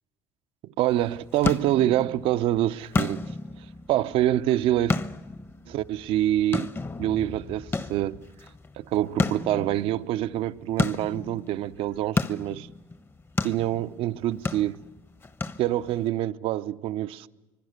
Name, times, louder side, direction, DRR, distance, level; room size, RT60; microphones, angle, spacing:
voice 1, 0.6-3.2 3.9-5.0 5.7-6.7 7.0-8.2 8.8-12.7 13.4-14.8 15.6-17.3, right 13 dB, 75° right, 0.7 m, -26 dB
sound 1, 0.9-16.1, left 3 dB, 25° left, 1.0 m, -33 dB
24.5 x 23.5 x 6.7 m
supercardioid pair, 85°, 10 cm